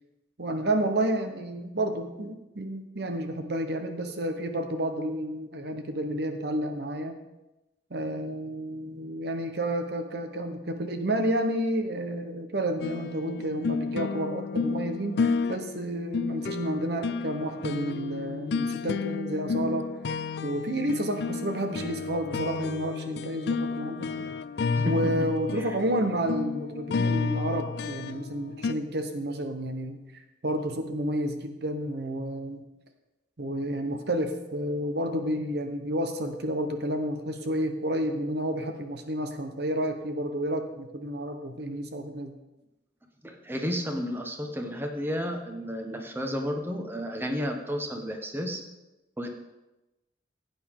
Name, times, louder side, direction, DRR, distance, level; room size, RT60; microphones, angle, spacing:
voice 1, 0.4-7.1 7.9-19.9 20.4-24.3 24.8-32.6 33.4-42.3, right 1 dB, 60° right, 6 dB, 1.0 m, -30 dB
sound 1, 12.8-28.7, left 4 dB, 65° left, 0.4 m, -31 dB
voice 2, 43.2-48.6 49.2-49.3, equal, 10° right, 3 dB, 1.2 m, -32 dB
16.0 x 9.0 x 3.7 m, 1.0 s
head